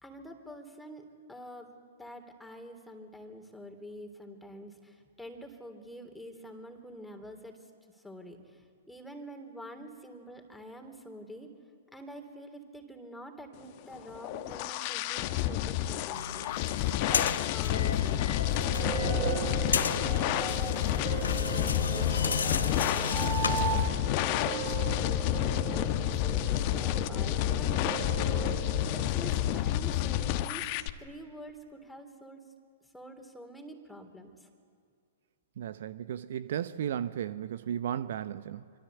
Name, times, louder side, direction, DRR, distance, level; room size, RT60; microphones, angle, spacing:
voice 1, 0.0-1.7 2.0-7.6 7.9-11.5 11.9-30.7 31.0-32.4 32.9-34.5, equal, 5° left, 4 dB, 3.4 m, -47 dB
sound 1, 13.9-30.9, left 13 dB, 40° left, 1.1 m, -30 dB
sound 2, 16.1-23.9, left 5 dB, 70° left, 1.1 m, -34 dB
sound 3, 18.2-29.5, right 9 dB, 30° right, 3.3 m, -38 dB
voice 2, 35.6-38.7, right 9 dB, 55° right, 14 dB, 0.8 m, -35 dB
26.0 x 25.0 x 8.2 m, 2.3 s
figure-of-eight pair, 110°, 0 cm